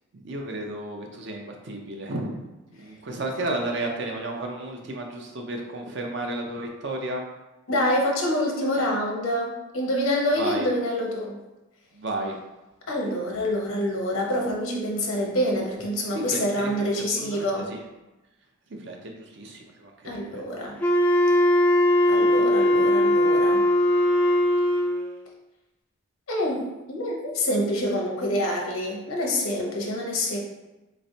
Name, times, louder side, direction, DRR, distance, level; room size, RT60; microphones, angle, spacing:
voice 1, 0.1-2.4 2.7-7.3 10.4-10.7 11.9-12.4 16.1-17.8 18.7-20.4, right 2 dB, 55° right, 1 dB, 0.6 m, -33 dB
voice 2, 7.7-11.4 12.9-17.7 20.0-20.8 22.1-23.7 26.3-26.6 26.9-30.4, left 1 dB, 80° left, -1 dB, 0.9 m, -26 dB
Wind instrument woodwind instrument, 20.8-25.1, left 1 dB, 10° left, 0.3 m, -20 dB
4.2 x 3.1 x 2.7 m, 1.0 s
head